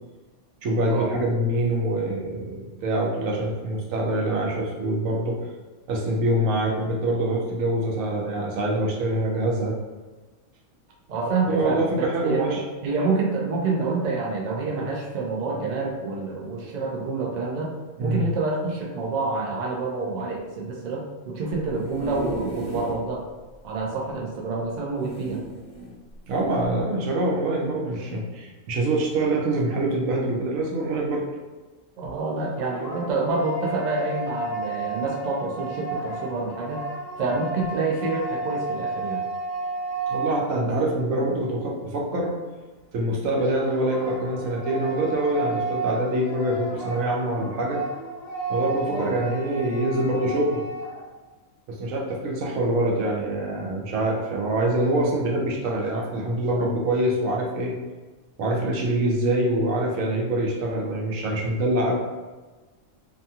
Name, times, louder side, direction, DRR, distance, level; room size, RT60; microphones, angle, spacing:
voice 1, 0.6-5.4 5.9-9.7 11.5-12.6 18.0-18.3 26.3-31.3 40.1-42.3 42.9-47.8 48.5-50.7 51.7-57.7 58.4-62.0, right 1 dB, 90° right, -1 dB, 1.0 m, -25 dB
voice 2, 11.1-17.7 18.0-23.2 23.6-25.4 32.0-36.8 37.2-39.2 48.9-49.2, right 3 dB, 70° right, 0 dB, 0.4 m, -27 dB
sound 1, 21.7-23.0 23.5-23.6 23.8-23.9 25.0-25.9 26.6-26.8, right 1 dB, 20° left, 1.1 m, -35 dB
sound 2, 32.3-41.0 43.3-51.1, right 3 dB, 60° left, 0.8 m, -33 dB
2.6 x 2.3 x 2.7 m, 1.3 s
omnidirectional pair, 1.4 m